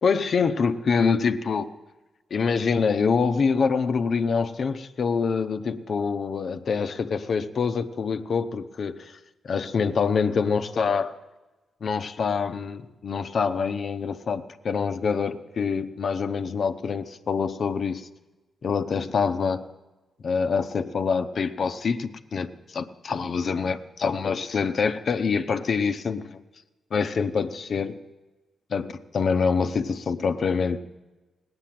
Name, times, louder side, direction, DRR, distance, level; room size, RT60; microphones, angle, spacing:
voice 1, 0.0-1.7 2.3-9.1 9.4-11.1 11.8-18.1 18.6-19.6 20.2-26.4 26.9-28.0 28.7-30.8, left 5 dB, 60° left, 0.9 m, -25 dB
17.5 x 9.7 x 7.6 m
supercardioid pair, 55°, 0 cm